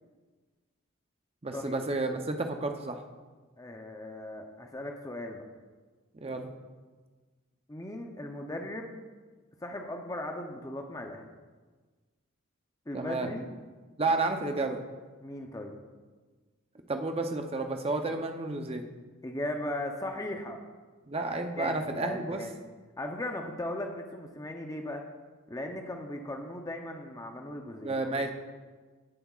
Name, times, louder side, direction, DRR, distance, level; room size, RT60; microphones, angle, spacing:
voice 1, 1.4-3.0 6.1-6.5 12.9-13.3 14.0-14.8 16.9-18.9 21.1-22.4 27.8-28.3, right 3 dB, 30° right, 5 dB, 0.6 m, -31 dB
voice 2, 3.6-5.5 7.7-8.9 9.6-11.3 12.9-13.5 15.2-15.8 19.2-20.6 21.6-22.6 23.0-25.0 25.5-28.3, left 1 dB, 15° left, 3 dB, 0.6 m, -37 dB
15.5 x 7.4 x 2.4 m, 1.4 s
head